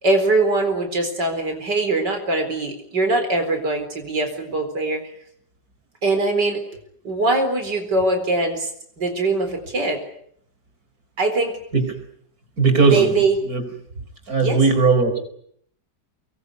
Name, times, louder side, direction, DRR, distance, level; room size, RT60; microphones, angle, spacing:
voice 1, 0.0-5.0 6.0-6.6 7.0-8.7 9.0-10.0 11.2-11.6 12.9-13.4 14.4-14.6, right 2 dB, 80° right, 6 dB, 4.9 m, -22 dB
voice 2, 12.6-13.1 13.4-13.7 14.3-15.2, right 4 dB, 60° right, 7 dB, 5.1 m, -17 dB
24.5 x 21.5 x 9.6 m, 0.68 s
omnidirectional pair, 1.8 m